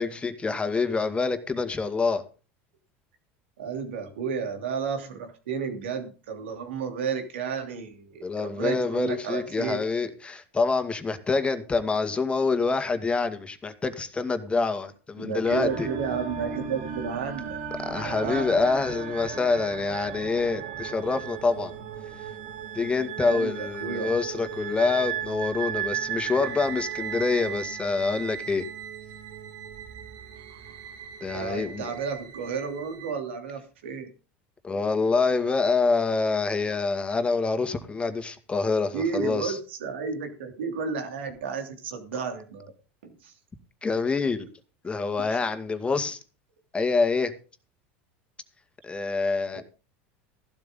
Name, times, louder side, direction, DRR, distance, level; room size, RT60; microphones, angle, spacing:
voice 1, 0.0-2.2 8.2-15.9 17.8-21.7 22.2-22.3 22.7-28.7 31.2-31.9 34.6-39.6 43.8-44.5 44.8-46.2 46.7-47.3 48.8-49.6, left 4 dB, 20° left, 2.1 m, -26 dB
voice 2, 3.6-9.8 15.2-17.6 18.0-18.5 23.2-24.1 31.3-34.1 38.9-42.7 43.0-43.3 49.5-49.6, right 6 dB, 90° right, 3.1 m, -32 dB
sound 1, 15.5-33.1, right 8 dB, 70° right, 2.2 m, -36 dB
15.0 x 12.0 x 3.8 m
supercardioid pair, 105°, 6 cm